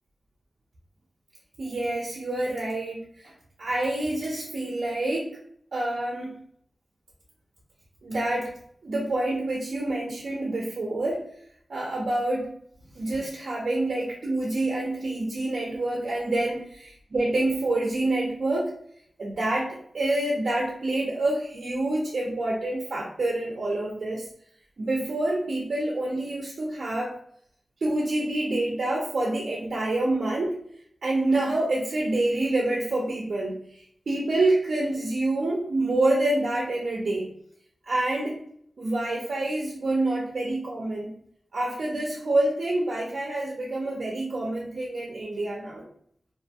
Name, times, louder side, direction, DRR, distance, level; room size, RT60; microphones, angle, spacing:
voice 1, 1.6-3.3 3.6-5.4 5.7-6.4 8.0-8.5 8.8-11.2 11.7-12.5 12.9-18.7 19.2-24.3 24.8-27.1 27.8-30.6 31.0-33.6 34.1-37.3 37.9-38.4 38.8-41.2 41.5-45.8, right 2 dB, 70° right, -3 dB, 0.5 m, -27 dB
2.6 x 2.2 x 2.7 m, 0.65 s
wide cardioid pair, 85°, 0 cm